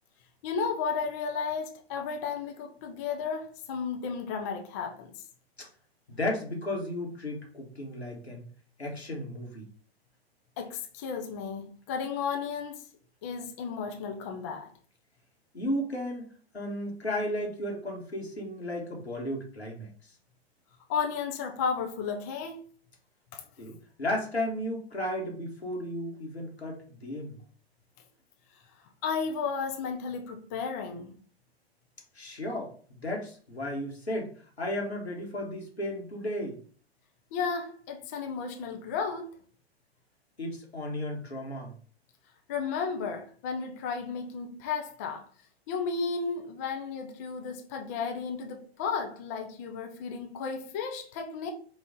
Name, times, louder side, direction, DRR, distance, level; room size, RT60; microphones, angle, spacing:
voice 1, 0.4-5.1 10.6-12.8 13.2-14.7 20.9-22.6 23.3-23.4 29.0-31.2 37.3-39.4 42.5-45.3 45.7-51.5, left 5 dB, 15° left, 0.3 m, -33 dB
voice 2, 6.1-8.5 8.8-9.7 15.5-16.3 16.5-19.9 23.6-27.3 32.1-36.6 40.4-41.7, left 1 dB, 85° left, 1.4 m, -34 dB
4.5 x 2.4 x 3.6 m
figure-of-eight pair, 110°, 32 cm